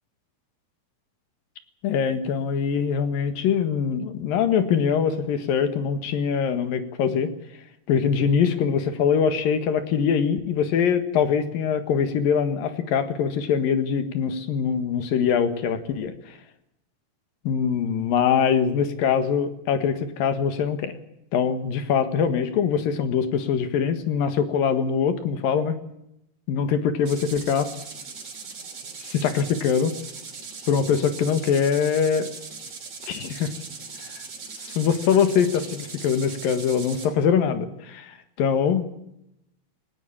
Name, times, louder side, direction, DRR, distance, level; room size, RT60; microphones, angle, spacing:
voice 1, 1.8-7.3 7.9-16.1 17.4-20.9 21.3-25.8 26.5-27.7 29.0-29.9 30.7-32.3 33.1-33.5 34.5-38.9, left 7 dB, 75° left, 9 dB, 3.4 m, -23 dB
sound 1, 27.0-37.1, right 5 dB, 45° right, 4.3 m, -39 dB
19.0 x 18.5 x 8.7 m, 0.82 s
omnidirectional pair, 4.1 m